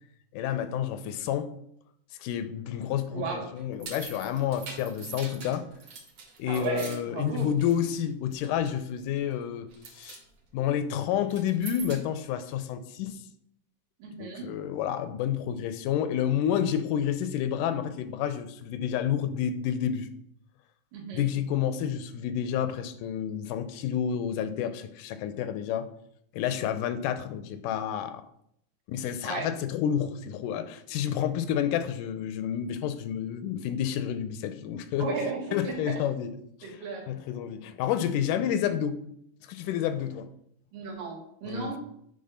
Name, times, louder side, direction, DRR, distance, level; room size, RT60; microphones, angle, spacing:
voice 1, 0.3-1.5 2.2-5.6 6.4-10.2 10.5-13.2 14.2-20.1 21.1-25.9 26.3-28.2 28.9-35.1 35.5-36.3 36.6-36.8 37.1-39.0 39.5-40.3 41.5-41.7, left 9 dB, 80° left, 11 dB, 2.1 m, -29 dB
voice 2, 3.1-3.4 6.5-7.5 14.0-14.5 20.9-21.2 29.2-29.5 35.0-36.0 36.6-37.0 40.7-41.8, right 4 dB, 85° right, 0 dB, 3.4 m, -34 dB
sound 1, 3.6-8.1 8.3-8.8 9.2-9.4 9.7-10.2 11.2-12.2, right 5 dB, 55° right, 1.4 m, -44 dB
8.6 x 3.8 x 5.6 m, 0.71 s
omnidirectional pair, 3.8 m